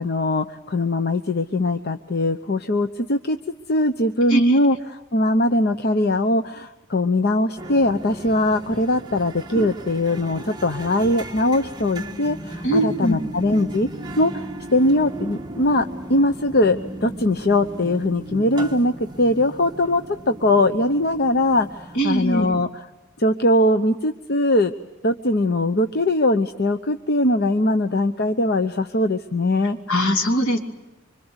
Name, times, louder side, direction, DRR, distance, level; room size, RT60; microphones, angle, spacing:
voice 1, 0.0-3.4 3.7-13.9 14.2-14.4 14.7-15.8 16.1-22.8 23.2-24.7 25.0-29.8, left 1 dB, 50° left, 8 dB, 0.9 m, -21 dB
sound 1, 7.6-22.2, right 1 dB, 20° right, 1.4 m, -36 dB
voice 2, 12.6-13.2 21.9-22.5 29.9-30.6, equal, 70° left, 3 dB, 3.3 m, -21 dB
26.0 x 25.5 x 8.1 m, 1.0 s
head